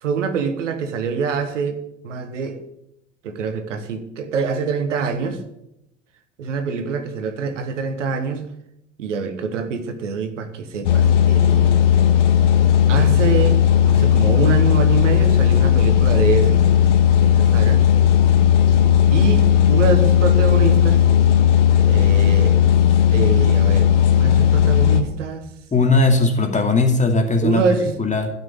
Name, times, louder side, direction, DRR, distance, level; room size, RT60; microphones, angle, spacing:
voice 1, 0.0-2.6 3.2-5.4 6.4-8.5 9.0-11.8 12.9-16.6 17.2-17.8 19.1-21.0 21.8-22.6 23.1-25.5 27.4-27.9, right 5 dB, 80° right, 8 dB, 1.3 m, -25 dB
sound 1, 10.8-25.0, left 9 dB, 75° left, 1.2 m, -15 dB
voice 2, 25.7-27.6 28.0-28.3, left 3 dB, 20° left, 4 dB, 2.4 m, -18 dB
12.5 x 6.1 x 8.4 m, 0.83 s
figure-of-eight pair, 65°, 37 cm